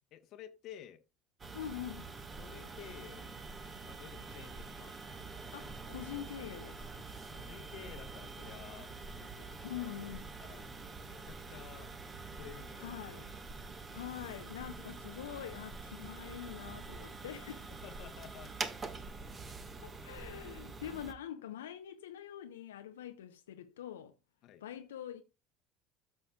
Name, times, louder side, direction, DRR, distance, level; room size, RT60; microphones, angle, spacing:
voice 1, 0.1-1.0 2.4-5.0 7.3-9.9 10.4-11.9 12.3-12.9 17.8-18.5 24.4-24.6, left 11 dB, 55° left, 0.9 m, -52 dB
sound 1, 1.4-21.1, right 3 dB, 30° right, 1.5 m, -46 dB
voice 2, 1.5-2.1 5.5-6.8 9.6-10.3 12.8-13.3 13.9-17.7 19.8-24.1 24.6-25.2, left 10 dB, 80° left, 0.6 m, -44 dB
14.0 x 6.5 x 2.3 m
hypercardioid pair, 65°, 0 cm